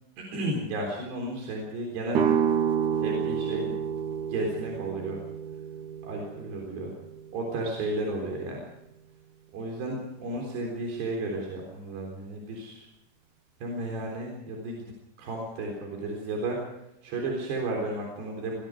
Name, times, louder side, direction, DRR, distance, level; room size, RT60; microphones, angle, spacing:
voice 1, 0.2-2.3 3.0-3.7 4.3-5.2 6.0-6.9 7.3-8.6 9.5-12.9 13.6-14.9 15.2-16.6 17.0-18.6, right 2 dB, 90° right, 0 dB, 6.0 m, -33 dB
sound 1, 2.1-7.9, right 8 dB, 60° right, 2.4 m, -29 dB
25.0 x 21.0 x 4.9 m, 0.84 s
omnidirectional pair, 4.7 m